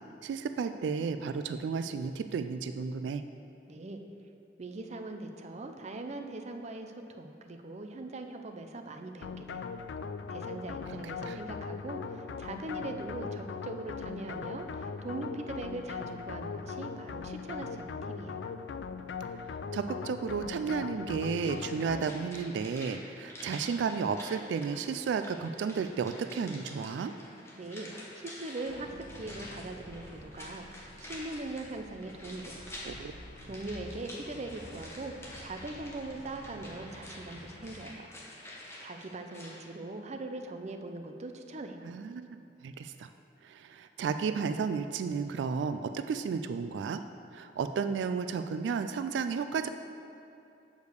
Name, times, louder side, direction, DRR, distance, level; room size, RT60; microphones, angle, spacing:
voice 1, 0.2-3.2 10.9-11.4 19.7-27.1 32.9-33.5 41.8-43.1 43.4-47.0 47.3-49.7, right 5 dB, 90° right, 9 dB, 0.3 m, -33 dB
voice 2, 3.7-4.0 4.6-9.7 10.3-18.5 27.6-28.9 29.2-32.7 33.5-35.1 35.4-38.1 38.8-41.8, right 2 dB, 40° right, 5 dB, 0.5 m, -41 dB
sound 1, 9.2-22.4, left 5 dB, 85° left, 0.4 m, -39 dB
sound 2, 21.3-39.6 39.9-40.0, left 1 dB, 15° left, 1.2 m, -48 dB
sound 3, 28.7-37.8, left 1 dB, 55° left, 0.7 m, -50 dB
6.5 x 5.1 x 6.6 m, 2.7 s
head